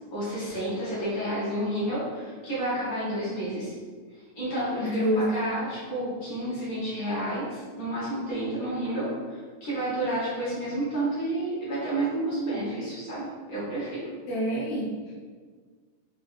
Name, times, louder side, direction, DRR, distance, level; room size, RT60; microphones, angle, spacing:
voice 1, 0.1-3.7 4.3-14.1, right 1 dB, 55° left, -9 dB, 1.0 m, -30 dB
voice 2, 4.8-5.5 14.3-15.1, equal, 70° left, -6 dB, 1.5 m, -28 dB
5.2 x 2.5 x 2.5 m, 1.5 s
omnidirectional pair, 3.4 m